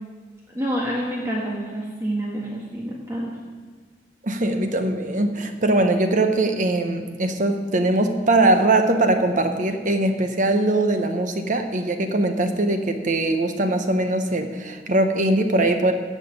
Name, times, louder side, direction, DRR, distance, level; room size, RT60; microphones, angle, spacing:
voice 1, 0.5-3.3, equal, 15° right, -4 dB, 1.5 m, -27 dB
voice 2, 4.2-15.9, right 2 dB, 45° right, 7 dB, 1.0 m, -21 dB
16.0 x 5.9 x 7.1 m, 1.5 s
head